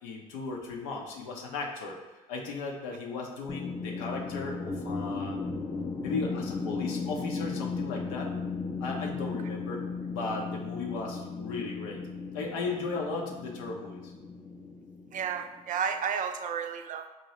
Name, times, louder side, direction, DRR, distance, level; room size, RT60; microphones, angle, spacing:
voice 1, 0.0-2.0 2.3-5.4 6.0-8.3 8.8-9.8 10.1-12.0 12.3-14.1, left 3 dB, 80° left, 0 dB, 0.7 m, -36 dB
sound 1, 3.5-15.6, left 4 dB, 20° left, 0.5 m, -36 dB
voice 2, 15.1-17.1, right 7 dB, 45° right, 7 dB, 0.4 m, -32 dB
4.2 x 2.7 x 3.0 m, 1.2 s
hypercardioid pair, 65°, 18 cm